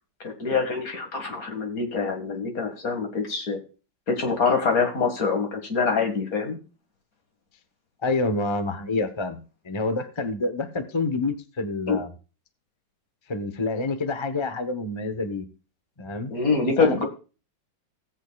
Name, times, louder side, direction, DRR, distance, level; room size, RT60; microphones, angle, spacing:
voice 1, 0.2-3.6 4.1-6.6 11.9-12.0 16.3-17.1, left 4 dB, 50° left, 4 dB, 2.2 m, -25 dB
voice 2, 8.0-12.1 13.3-15.5 16.0-16.3 16.8-17.0, left 3 dB, 25° left, 8 dB, 0.6 m, -28 dB
17.5 x 8.4 x 2.3 m, 0.33 s
omnidirectional pair, 2.0 m